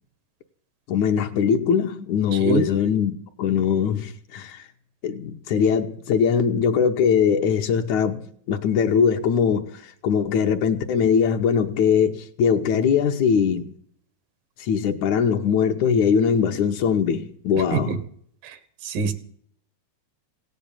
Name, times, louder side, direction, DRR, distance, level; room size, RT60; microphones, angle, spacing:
voice 1, 0.9-3.1 3.4-4.7 5.0-13.7 14.6-17.9, left 7 dB, 70° left, 2.2 m, -21 dB
voice 2, 2.3-2.7 17.6-18.0 18.4-19.1, right 6 dB, 85° right, 3.2 m, -26 dB
17.5 x 8.3 x 8.9 m
omnidirectional pair, 3.8 m